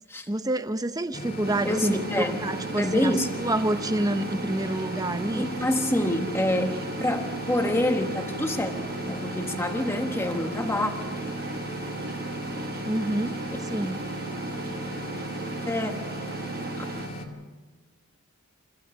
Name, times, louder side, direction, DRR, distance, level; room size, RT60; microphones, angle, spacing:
voice 1, 0.3-2.0 2.4-5.5 12.8-14.0, right 1 dB, 15° right, 11 dB, 0.7 m, -28 dB
sound 1, 1.1-17.3, equal, 40° left, 2.1 m, -37 dB
sound 2, 1.4-17.1, right 3 dB, 45° right, 1.1 m, -36 dB
voice 2, 1.6-2.4 2.8-3.3 5.4-8.7 9.1-10.9 13.8-13.9 15.6-15.9 16.6-16.9, left 1 dB, 10° left, 5 dB, 1.2 m, -27 dB
28.5 x 14.5 x 6.7 m, 1.4 s
head